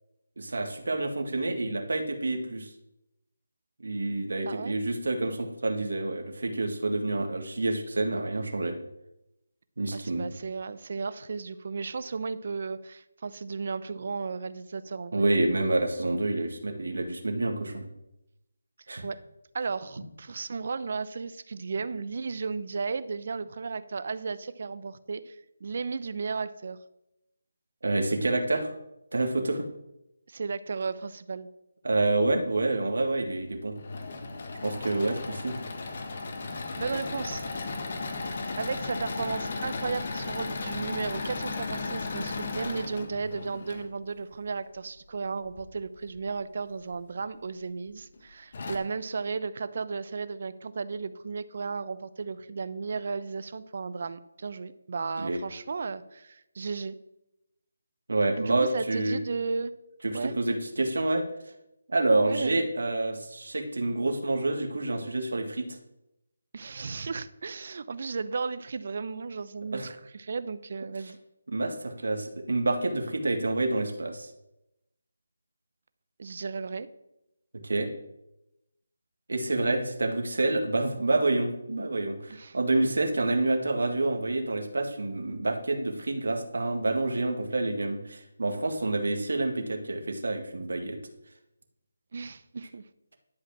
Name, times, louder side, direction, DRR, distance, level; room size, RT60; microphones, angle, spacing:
voice 1, 0.4-2.7 3.8-8.8 9.8-10.3 15.1-17.9 18.9-19.0 27.8-28.7 29.1-29.6 31.8-33.8 34.6-35.6 55.2-55.4 58.1-59.2 60.0-61.2 61.9-65.8 69.7-69.9 71.5-74.3 77.6-77.9 79.3-91.0, right 2 dB, 75° right, 4 dB, 1.9 m, -28 dB
voice 2, 9.9-15.6 19.0-19.2 19.5-26.8 30.3-31.5 36.8-37.4 38.6-57.0 58.4-59.7 60.1-60.3 62.3-62.7 66.5-71.2 76.2-76.9 82.3-82.6 92.1-92.8, right 4 dB, 50° right, 14 dB, 0.7 m, -34 dB
Engine / Mechanisms, 33.5-43.9 45.5-46.2 46.8-46.9 47.2-47.3 48.1-48.2 48.5-48.8, left 3 dB, 45° left, 1.5 m, -35 dB
11.5 x 4.9 x 7.6 m, 0.88 s
figure-of-eight pair, 165°, 0 cm